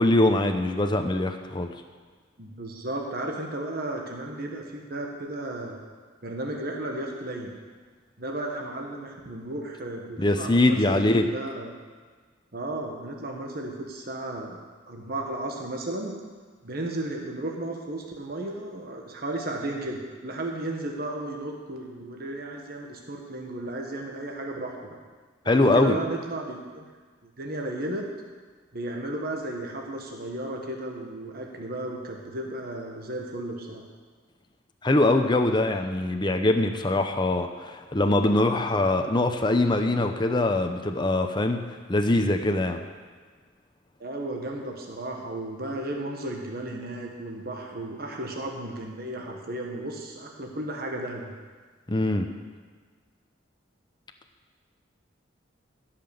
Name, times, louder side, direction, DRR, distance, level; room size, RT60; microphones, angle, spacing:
voice 1, 0.0-1.7 10.2-11.3 25.5-26.0 34.8-41.6 41.9-42.8 51.9-52.3, left 2 dB, 25° left, 5 dB, 0.7 m, -23 dB
voice 2, 2.4-5.8 6.2-7.5 8.2-11.7 12.5-14.6 14.9-16.2 16.6-25.0 25.4-26.9 27.4-28.0 28.7-33.8 44.0-51.3, right 1 dB, 50° right, 1 dB, 1.4 m, -34 dB
16.0 x 5.9 x 7.0 m, 1.5 s
head